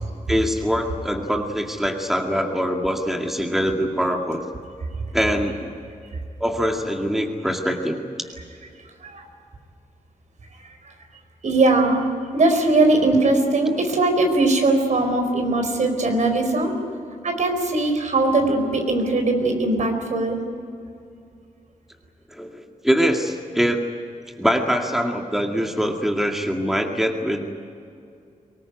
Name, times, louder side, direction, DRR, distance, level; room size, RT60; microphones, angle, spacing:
voice 1, 0.3-4.4 5.1-5.7 6.4-8.0 22.3-23.8 24.4-27.5, equal, ahead, 2 dB, 2.2 m, -23 dB
voice 2, 11.4-12.0 12.3-16.7 17.2-20.4, right 2 dB, 65° right, 5 dB, 4.5 m, -20 dB
24.0 x 19.5 x 9.5 m, 2.5 s
wide cardioid pair, 100°, 14 cm